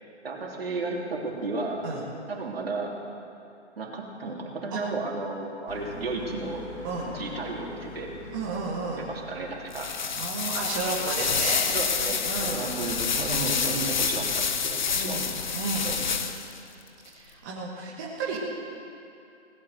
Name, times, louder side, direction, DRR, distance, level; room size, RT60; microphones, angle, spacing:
voice 1, 0.2-1.9 2.3-2.9 3.8-6.6 7.1-8.1 9.0-9.9 10.9-11.0 11.7-15.2 15.5-16.1, right 3 dB, 55° right, -1 dB, 2.9 m, -33 dB
sound 1, 5.7-14.0, left 2 dB, 85° left, 3.1 m, -45 dB
voice 2, 8.3-9.1 10.2-11.6 12.2-12.7 14.9-15.9 17.1-18.4, right 4 dB, 20° right, -6 dB, 1.5 m, -32 dB
sound 2, 9.7-16.6, left 6 dB, 40° left, 0.8 m, -28 dB
18.0 x 8.4 x 7.9 m, 2.6 s
hypercardioid pair, 160°, 35 cm